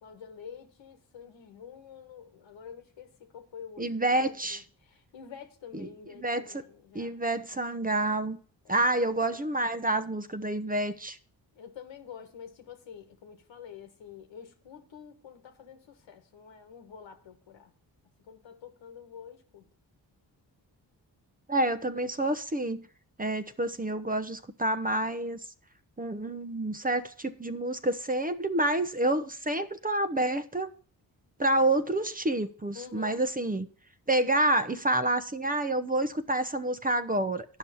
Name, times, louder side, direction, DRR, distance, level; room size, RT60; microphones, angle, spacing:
voice 1, 0.0-7.2 8.6-8.7 9.2-9.7 11.5-17.7 18.2-19.7 32.7-33.2, left 7 dB, 80° left, 1.5 m, -48 dB
voice 2, 3.8-4.6 5.7-5.9 6.2-6.4 6.9-8.4 8.7-11.2 21.5-22.9 23.2-25.4 26.0-30.7 31.4-33.7 34.1-37.6, right 1 dB, 20° right, 0.9 m, -28 dB
9.8 x 5.6 x 7.0 m
supercardioid pair, 45°, 45 cm